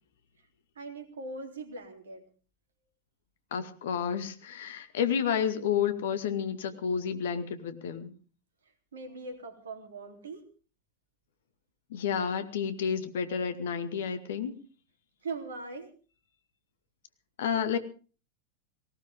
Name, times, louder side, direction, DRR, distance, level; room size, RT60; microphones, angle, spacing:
voice 1, 0.7-2.3 8.9-10.4 15.2-15.9, right 3 dB, 65° right, 5 dB, 3.5 m, -40 dB
voice 2, 3.5-8.1 11.9-14.6 17.4-17.8, left 7 dB, 60° left, 10 dB, 2.0 m, -30 dB
19.0 x 18.5 x 3.7 m, 0.38 s
figure-of-eight pair, 90°, 0 cm